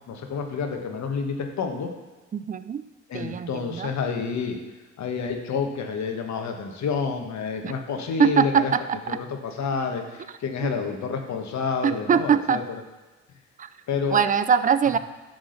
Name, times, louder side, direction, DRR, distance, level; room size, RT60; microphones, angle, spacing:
voice 1, 0.1-1.9 3.1-4.6 5.0-8.7 9.1-12.6 13.9-14.2, left 5 dB, 65° left, 4 dB, 1.3 m, -29 dB
voice 2, 2.3-2.8 3.1-3.9 7.6-7.7 8.2-9.2 10.6-10.7 11.8-12.6 13.6-13.7 14.1-15.0, right 7 dB, 25° right, 12 dB, 0.4 m, -22 dB
10.5 x 3.9 x 6.5 m, 1.2 s
cardioid pair, 90°, 30 cm